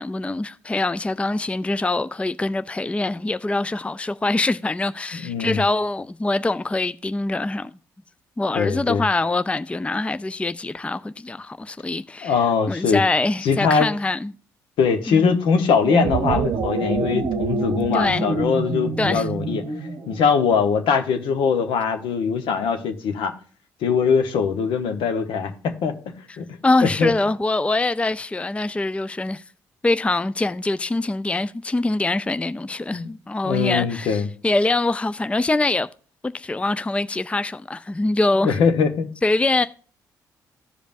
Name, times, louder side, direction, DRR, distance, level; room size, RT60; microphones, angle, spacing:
voice 1, 0.0-7.7 8.4-12.4 12.7-14.3 15.1-15.3 17.9-18.3 19.0-19.3 26.6-29.4 29.8-35.9 36.2-38.6 39.2-39.6, left 2 dB, 15° left, 0.4 m, -24 dB
voice 2, 5.2-5.6 8.5-9.1 12.2-13.0 13.4-13.9 14.8-19.7 20.1-23.3 23.8-27.1 32.9-33.1 33.4-34.3 38.4-39.1, left 6 dB, 70° left, 1.1 m, -22 dB
sound 1, 15.7-20.3, right 3 dB, 65° right, 0.8 m, -26 dB
14.5 x 5.1 x 2.6 m
hypercardioid pair, 50°, 9 cm